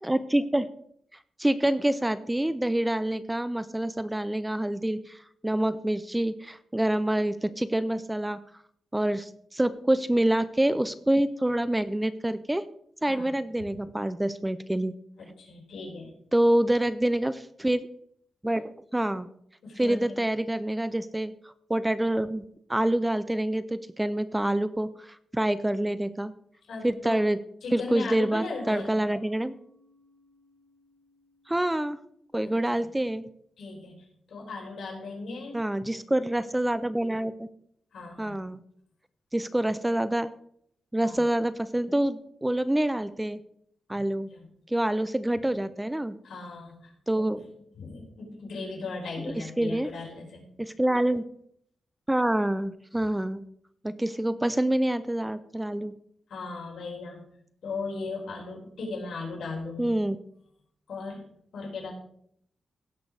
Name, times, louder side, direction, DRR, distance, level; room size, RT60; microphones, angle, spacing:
voice 1, 0.0-0.7 1.4-8.4 8.9-12.7 13.0-14.9 16.3-17.9 18.4-19.3 19.8-21.3 21.7-22.4 22.7-26.3 26.8-27.4 27.7-29.5 31.5-32.0 32.3-33.3 35.5-37.5 38.2-38.6 39.3-40.3 40.9-43.4 43.9-44.3 44.7-46.2 47.1-47.4 49.4-49.9 50.6-51.2 52.1-53.4 53.8-55.9 59.8-60.2, right 1 dB, 5° right, 14 dB, 0.4 m, -26 dB
voice 2, 15.2-16.1 19.6-20.2 26.7-27.2 27.6-29.0 32.4-32.8 33.6-35.7 37.9-38.4 41.0-41.3 44.3-44.5 46.2-46.9 47.2-47.4 47.7-50.5 56.3-57.2 57.6-60.0 60.9-61.3 61.5-61.9, left 3 dB, 65° left, -2 dB, 4.5 m, -37 dB
Mallet percussion, 28.1-33.5, left 1 dB, 25° right, 2.6 m, -60 dB
16.5 x 6.1 x 4.9 m, 0.68 s
wide cardioid pair, 165°, 0 cm